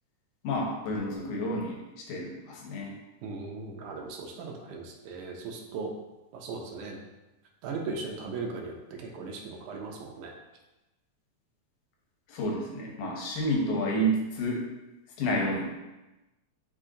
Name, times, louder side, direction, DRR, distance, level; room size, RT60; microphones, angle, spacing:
voice 1, 0.4-2.9 12.3-14.6 15.2-15.8, equal, 80° left, -1 dB, 2.3 m, -30 dB
voice 2, 3.2-5.9 6.3-7.0 7.6-10.3, right 4 dB, 85° right, 1 dB, 2.1 m, -38 dB
5.5 x 2.5 x 3.8 m, 1.0 s
omnidirectional pair, 3.5 m